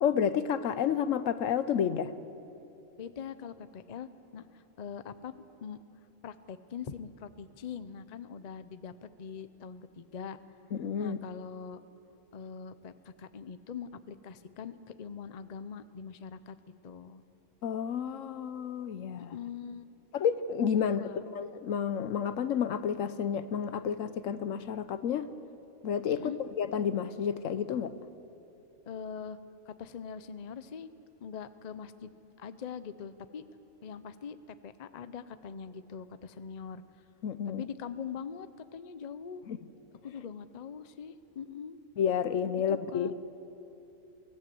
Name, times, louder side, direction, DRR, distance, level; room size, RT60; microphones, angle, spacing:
voice 1, 0.0-2.1 10.7-11.2 17.6-19.4 20.1-21.0 21.3-25.3 25.8-27.9 37.2-37.6 39.5-39.6 42.0-43.1, left 8 dB, 75° left, 13 dB, 1.1 m, -30 dB
voice 2, 3.0-5.8 6.2-10.4 11.0-11.8 12.3-16.6 16.8-17.2 19.2-19.8 20.8-21.2 26.1-26.4 28.9-29.4 29.7-30.9 31.2-33.4 33.8-36.8 37.5-39.5 40.0-41.8 42.7-43.1, left 7 dB, 40° left, 12 dB, 0.6 m, -43 dB
24.0 x 16.5 x 7.7 m, 2.9 s
omnidirectional pair, 1.4 m